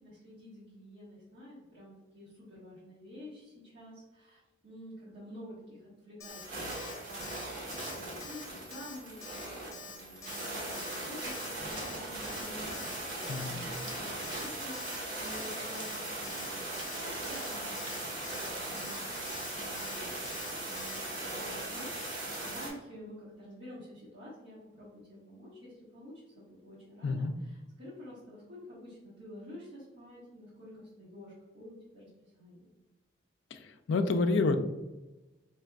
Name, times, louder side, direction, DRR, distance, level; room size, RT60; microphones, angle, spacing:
voice 1, 0.0-7.2 7.6-32.7, left 1 dB, 60° right, -11 dB, 1.4 m, -50 dB
Alarm, 6.2-6.4 6.7-6.9 7.2-7.4 7.7-8.0 8.2-8.4 8.7-8.9 9.2-9.5 9.7-10.0 10.2-10.5 10.7-11.0 11.2-11.5 11.7-12.0 12.2-12.5 12.7-13.0 13.2-13.5 13.7-14.0 14.2-14.5 14.7-15.0 15.2-15.5 15.7-16.0 16.2-16.5 16.7-17.0 17.2-17.5 17.7-18.0 18.2-18.5 18.7-19.0 19.2-19.5 19.8-20.0 20.3-20.5 20.7-21.0, left 4 dB, 15° left, 0.6 m, -47 dB
sound 1, 6.3-22.7, right 1 dB, 45° right, 1.2 m, -39 dB
sound 2, 11.5-19.6, right 3 dB, 80° right, 0.8 m, -52 dB
voice 2, 13.3-13.7 27.0-27.4 33.5-34.6, left 3 dB, 65° left, 8 dB, 0.4 m, -29 dB
4.3 x 3.3 x 2.4 m, 1.1 s
head